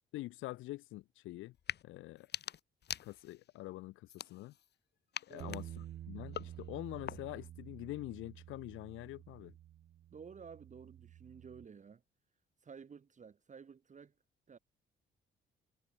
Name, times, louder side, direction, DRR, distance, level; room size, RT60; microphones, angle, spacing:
voice 1, 0.1-1.5 1.8-2.3 3.0-4.5 5.3-9.5, left 17 dB, 85° left, 0.5 m, -45 dB
sound 1, 1.5-1.8 2.2-3.5 4.1-4.7 5.1-7.5, left 10 dB, 55° left, 1.3 m, -45 dB
voice 2, 5.3-5.6 10.1-12.0 12.6-14.1 14.5-14.6, right 6 dB, 40° right, 1.7 m, -53 dB
sound 2, 5.4-11.7, right 12 dB, 55° right, 0.5 m, -50 dB
cardioid pair, 90°, 20 cm